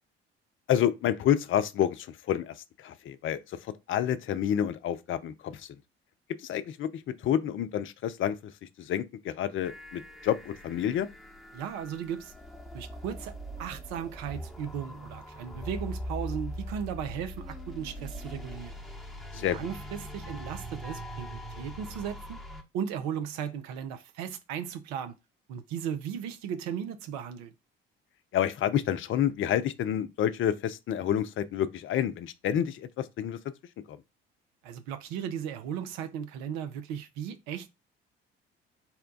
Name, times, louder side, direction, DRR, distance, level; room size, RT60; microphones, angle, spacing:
voice 1, 0.7-3.6 3.9-5.7 6.4-8.4 8.8-11.1 19.3-19.6 28.3-33.4 33.9-34.0, left 10 dB, 40° left, 0.5 m, -29 dB
sound 1, 9.6-22.6, equal, ahead, 1.0 m, -41 dB
voice 2, 11.5-12.3 12.7-13.3 13.6-18.7 19.3-22.4 22.7-25.1 25.5-27.5 34.6-37.7, right 8 dB, 65° right, 0.6 m, -36 dB
4.2 x 2.2 x 3.8 m
figure-of-eight pair, 55°, 30 cm